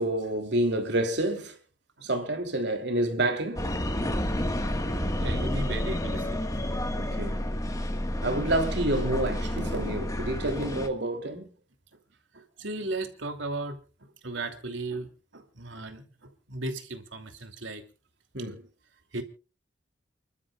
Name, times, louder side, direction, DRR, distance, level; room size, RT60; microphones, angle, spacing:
voice 1, 0.0-1.6 2.0-3.6 7.0-7.4 8.2-11.5 18.3-18.6, right 1 dB, 65° right, 3.0 m, -28 dB
sound 1, 3.6-10.9, left 1 dB, 20° left, 1.6 m, -30 dB
voice 2, 5.2-6.6 7.8-7.9 12.3-13.8 14.2-16.1 16.5-17.8 19.1-19.2, right 2 dB, 80° right, 2.8 m, -35 dB
29.5 x 12.5 x 2.4 m
head